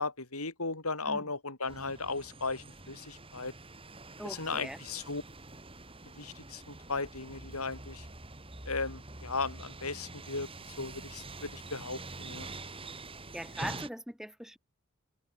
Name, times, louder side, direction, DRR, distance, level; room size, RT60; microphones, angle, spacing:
voice 1, 0.0-3.5 4.2-5.2 6.2-8.1 8.7-10.5 10.8-12.5, left 3 dB, 85° left, 5.5 m, -36 dB
sound 1, 1.7-13.9, right 2 dB, 25° right, 4.9 m, -46 dB
voice 2, 4.2-4.8 13.3-14.6, equal, ahead, 4.9 m, -41 dB
head